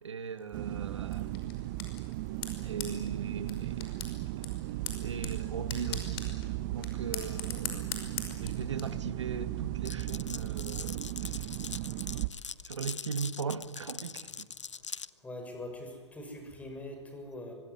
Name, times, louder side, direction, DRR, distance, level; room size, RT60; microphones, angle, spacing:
voice 1, 0.0-1.4 2.6-4.0 5.0-6.2 6.7-7.9 8.4-11.6 12.6-14.5, right 6 dB, 80° right, 11 dB, 2.1 m, -39 dB
sound 1, 0.5-12.3, right 17 dB, 40° right, 1.0 m, -36 dB
sound 2, 1.1-8.8, left 7 dB, 55° left, 5.7 m, -43 dB
Glass, 9.8-15.1, left 6 dB, 85° left, 0.7 m, -42 dB
voice 2, 15.2-17.5, left 1 dB, 10° left, 4 dB, 6.6 m, -42 dB
25.0 x 21.0 x 9.8 m, 1.5 s
hypercardioid pair, 120°, 15 cm